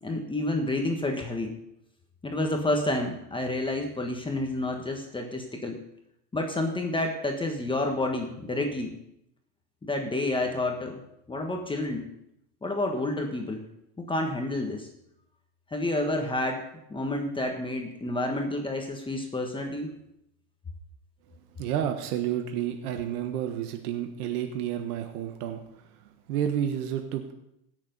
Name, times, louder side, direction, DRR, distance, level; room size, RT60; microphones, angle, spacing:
voice 1, 0.0-1.5 2.2-5.8 6.3-8.9 9.8-11.0 11.3-12.1 12.6-13.6 14.0-14.9 15.7-16.6 16.9-19.9, left 2 dB, 10° left, 2 dB, 1.4 m, -29 dB
voice 2, 21.6-27.3, right 10 dB, 80° right, 6 dB, 1.4 m, -31 dB
16.5 x 7.1 x 5.3 m, 0.80 s
supercardioid pair, 130°, 44 cm